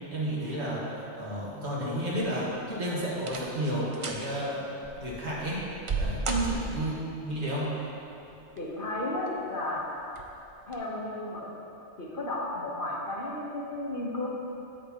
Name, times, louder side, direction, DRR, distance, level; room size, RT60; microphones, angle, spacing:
voice 1, 0.1-5.6 6.0-6.9 7.2-7.7, equal, 75° right, -7 dB, 1.9 m, -32 dB
sound 1, 2.7-2.8 3.2-3.6 3.9-4.3 4.8-7.0 8.2-8.8 9.3-9.4 10.1-10.3 10.7-10.8, right 3 dB, 40° right, 0.4 m, -34 dB
voice 2, 6.3-6.6 8.6-9.8 10.7-11.5 12.0-14.3, left 1 dB, 50° left, -4 dB, 1.2 m, -33 dB
8.3 x 8.0 x 2.9 m, 2.9 s
omnidirectional pair, 1.2 m